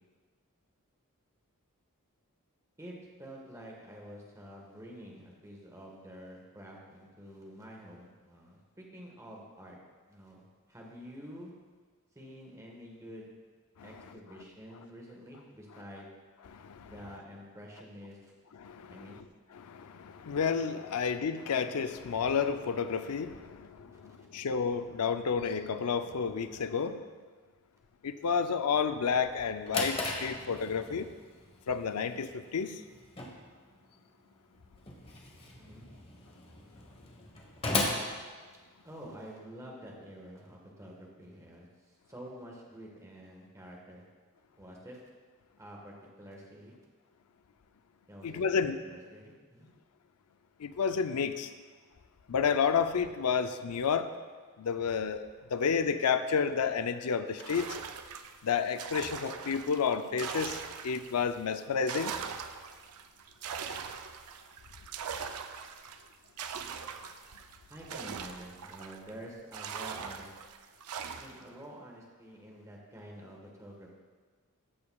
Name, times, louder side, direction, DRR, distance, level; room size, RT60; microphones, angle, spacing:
voice 1, 2.8-9.8 10.1-10.4 10.7-11.5 12.1-13.3 13.8-16.1 16.8-18.3 18.9-19.2 23.9-24.3 35.5-35.8 38.8-44.0 44.6-45.0 45.6-46.7 48.1-48.5 48.8-49.7 67.7-70.3 71.2-74.0, equal, 15° right, -2 dB, 1.4 m, -48 dB
voice 2, 16.5-16.9 18.6-19.2 19.5-27.0 28.0-31.1 31.7-32.8 48.2-48.8 50.6-51.5 52.3-54.1 54.6-57.8 58.4-62.1, left 6 dB, 80° left, 10 dB, 0.5 m, -31 dB
Drawer open or close, 29.3-39.1, left 2 dB, 25° left, 1.2 m, -38 dB
sound 1, 57.4-61.2 61.6-69.1 69.5-71.5, right 6 dB, 80° right, 0.5 m, -41 dB
14.0 x 6.8 x 2.3 m, 1.5 s
head